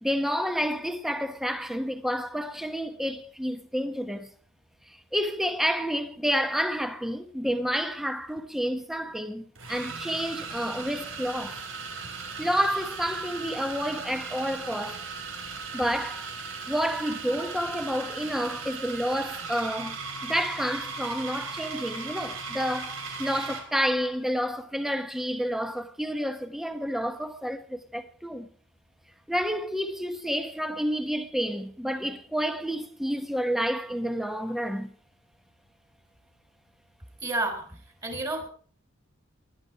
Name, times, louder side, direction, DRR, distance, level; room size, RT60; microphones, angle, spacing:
voice 1, 0.0-4.3 5.1-11.6 12.4-15.0 15.7-16.3 16.7-20.0 20.2-28.5 29.3-34.9, equal, ahead, 1.3 m, -29 dB
sound 1, 8.2-8.4 9.6-23.7, right 4 dB, 90° right, 4.3 m, -37 dB
voice 2, 37.2-37.6 38.0-38.5, right 2 dB, 20° right, 3.5 m, -29 dB
19.5 x 11.5 x 4.7 m
head